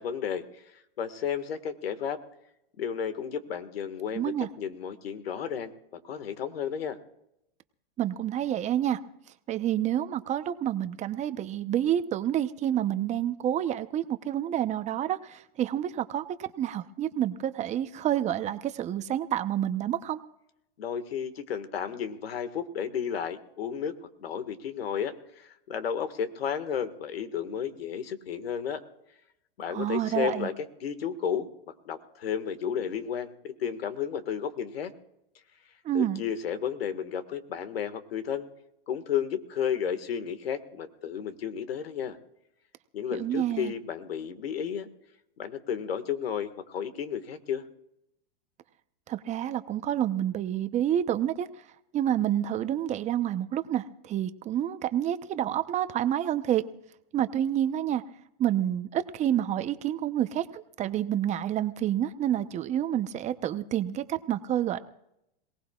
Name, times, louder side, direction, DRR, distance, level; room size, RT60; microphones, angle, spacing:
voice 1, 0.0-2.2 2.8-5.7 6.0-7.0 20.8-28.8 29.6-31.5 31.9-34.9 35.9-38.5 38.9-42.2 42.9-44.9 45.4-47.6, left 8 dB, 85° left, 9 dB, 1.9 m, -33 dB
voice 2, 4.1-4.5 8.0-9.0 9.5-20.2 29.7-30.5 35.8-36.2 43.1-43.7 49.1-51.5 51.9-56.6 57.1-58.0 58.4-64.8, right 11 dB, 25° right, 11 dB, 0.8 m, -28 dB
27.0 x 18.5 x 2.4 m, 0.81 s
hypercardioid pair, 135°, 29 cm